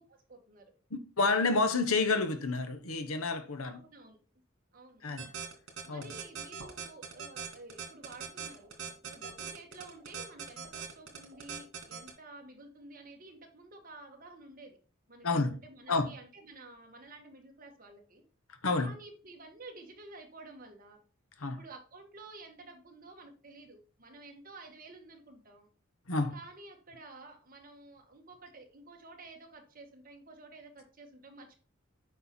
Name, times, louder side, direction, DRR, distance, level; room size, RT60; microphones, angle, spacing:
voice 1, 0.1-0.7 3.7-4.2 4.7-5.0 5.9-8.8 9.0-14.8 15.1-15.3 15.6-18.2 18.8-21.0 21.6-25.7 26.3-31.6, right 2 dB, 40° right, 1.8 m, -51 dB
voice 2, 0.9-3.8 5.0-5.3 5.9-6.1 15.2-15.6 15.9-16.1 18.6-18.9 21.4-21.6 26.1-26.3, left 3 dB, 90° left, 1.2 m, -29 dB
sound 1, 5.2-12.1, right 6 dB, 65° right, 2.9 m, -41 dB
8.4 x 5.5 x 4.4 m
head